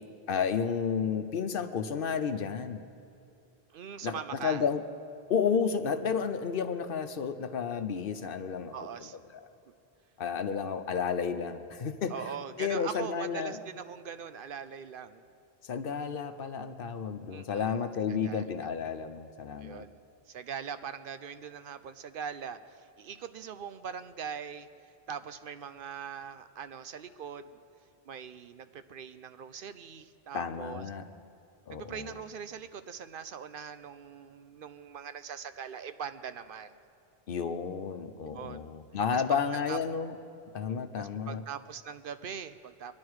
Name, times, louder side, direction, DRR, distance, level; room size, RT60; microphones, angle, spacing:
voice 1, 0.3-2.8 4.0-4.8 5.3-8.7 10.2-12.1 12.6-13.6 15.6-19.9 30.3-31.0 31.7-32.1 37.3-40.2 40.5-41.4, left 6 dB, 65° left, 9 dB, 0.9 m, -31 dB
voice 2, 3.7-4.6 8.7-9.2 12.1-15.2 17.3-17.8 18.1-18.7 19.6-20.0 20.3-27.6 28.0-30.9 31.7-36.7 38.3-38.7 39.1-39.2 39.7-39.8 41.0-42.9, right 7 dB, 65° right, 11 dB, 0.7 m, -42 dB
23.0 x 10.5 x 4.8 m, 2.6 s
omnidirectional pair, 1.0 m